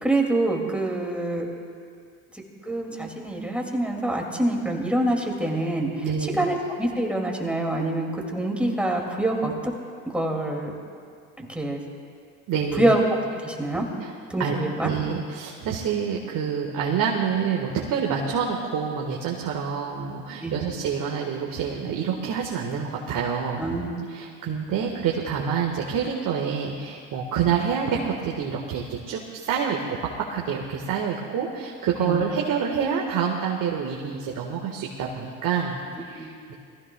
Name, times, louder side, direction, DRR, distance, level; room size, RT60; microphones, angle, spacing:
voice 1, 0.0-1.5 2.3-6.1 6.4-9.7 10.1-10.7 11.4-11.8 12.8-13.0 13.4-13.9 14.3-14.9 20.4-20.5 23.6-23.9 24.2-24.3 32.0-32.2 36.2-36.3, right 1 dB, 5° right, 0 dB, 2.4 m, -25 dB
voice 2, 6.0-6.5 12.5-12.9 14.0-14.1 14.4-14.6 14.8-23.7 24.1-36.5, right 7 dB, 55° right, -1 dB, 1.6 m, -27 dB
22.0 x 15.0 x 2.3 m, 2.3 s
supercardioid pair, 80°, 39 cm